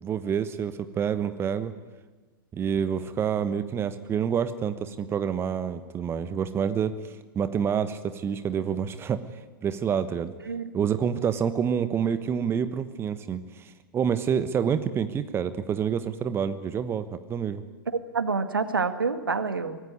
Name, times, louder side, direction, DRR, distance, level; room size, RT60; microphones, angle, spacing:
voice 1, 0.0-1.7 2.5-9.2 9.6-10.3 10.7-17.6, right 7 dB, 20° right, 11 dB, 1.2 m, -28 dB
voice 2, 17.9-19.8, right 4 dB, 75° right, 10 dB, 2.0 m, -27 dB
24.5 x 19.5 x 9.7 m, 1.2 s
figure-of-eight pair, 100°, 12 cm